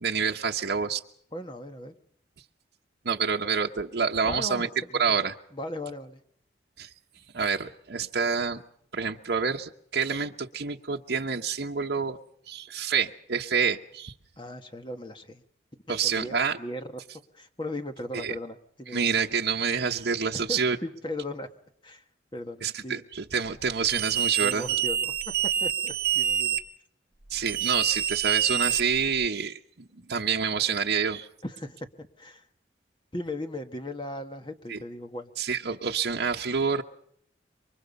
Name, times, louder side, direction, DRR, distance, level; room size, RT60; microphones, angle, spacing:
voice 1, 0.0-1.0 3.0-4.7 5.0-5.3 6.8-6.9 7.3-8.6 8.9-12.2 12.5-14.1 15.9-16.6 18.1-18.3 18.9-20.8 22.6-24.7 27.3-31.3 34.7-34.8 35.4-36.8, right 6 dB, 70° right, 1 dB, 1.0 m, -27 dB
voice 2, 1.3-1.9 4.2-5.1 5.5-6.2 14.4-15.4 16.0-17.0 17.3-19.1 20.3-21.5 21.8-22.0 22.3-23.0 24.4-25.3 25.6-26.6 31.4-32.5 33.1-35.3, left 1 dB, 25° left, 6 dB, 1.5 m, -37 dB
sound 1, 23.9-26.6 27.5-29.3, right 9 dB, 55° right, 1.3 m, -27 dB
28.0 x 24.0 x 5.4 m, 0.65 s
head